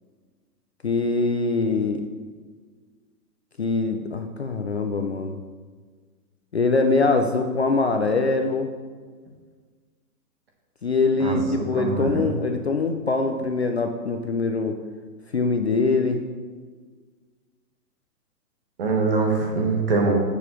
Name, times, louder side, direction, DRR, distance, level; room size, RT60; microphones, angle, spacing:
voice 1, 0.8-2.0 3.6-5.4 6.5-8.7 10.8-14.8 15.3-16.3, left 3 dB, 45° left, 5 dB, 0.4 m, -23 dB
voice 2, 11.2-12.3 18.8-20.1, right 3 dB, 35° right, 1 dB, 1.3 m, -23 dB
10.0 x 7.0 x 3.0 m, 1.5 s
hypercardioid pair, 170°, 48 cm